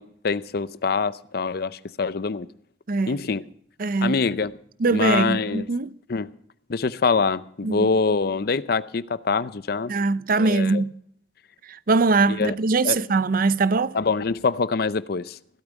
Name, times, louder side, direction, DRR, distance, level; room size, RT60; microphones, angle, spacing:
voice 1, 0.0-2.5 3.1-3.4 4.0-4.6 4.9-5.7 6.1-6.3 6.7-10.0 10.4-10.8 12.3-12.5 12.8-13.0 13.9-15.4, left 4 dB, 60° left, 0.6 m, -25 dB
voice 2, 2.9-3.2 3.8-4.2 4.8-5.9 7.6-7.9 9.9-10.9 11.7-14.0, right 3 dB, 55° right, 0.6 m, -22 dB
16.5 x 12.5 x 5.1 m
head